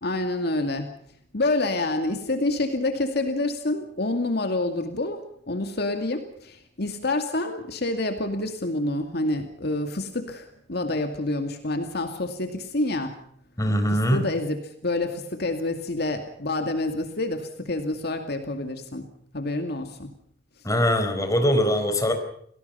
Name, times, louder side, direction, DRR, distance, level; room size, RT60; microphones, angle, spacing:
voice 1, 0.0-0.9 1.3-13.2 13.9-20.1, left 2 dB, 60° left, 6 dB, 2.4 m, -28 dB
voice 2, 13.6-14.2 20.6-22.1, equal, 20° left, 6 dB, 4.4 m, -22 dB
29.5 x 19.0 x 5.7 m, 0.65 s
head